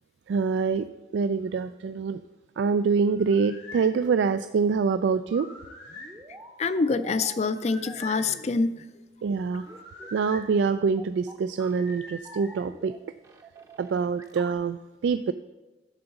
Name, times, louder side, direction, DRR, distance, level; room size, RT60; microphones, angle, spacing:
voice 1, 0.3-0.9 1.1-2.2 2.6-5.5 9.2-9.7 10.1-12.9 13.8-15.3, right 5 dB, 80° right, 11 dB, 0.3 m, -25 dB
sound 1, 3.0-3.9 5.2-6.2 7.5-8.3 9.5-10.4 11.7-12.6, left 2 dB, 90° left, 3.1 m, -44 dB
sound 2, 5.6-7.4 7.9-8.8 9.7-12.0 12.2-13.0 13.2-14.5, right 2 dB, 20° right, 0.7 m, -48 dB
voice 2, 6.6-8.8, left 4 dB, 40° left, 12 dB, 0.4 m, -26 dB
11.5 x 3.9 x 7.0 m, 1.1 s
head